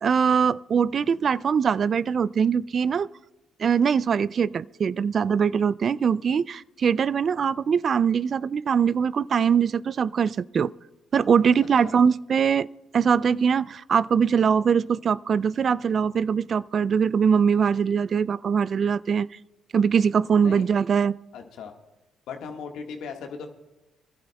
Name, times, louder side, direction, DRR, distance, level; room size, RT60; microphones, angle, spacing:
voice 1, 0.0-3.1 3.6-10.7 11.1-12.7 12.9-19.3 19.7-21.1, right 7 dB, 55° right, 0.3 m, -22 dB
voice 2, 21.3-21.7 22.3-23.5, left 6 dB, 70° left, 1.5 m, -37 dB
26.5 x 12.0 x 2.3 m
hypercardioid pair, 50°, 0 cm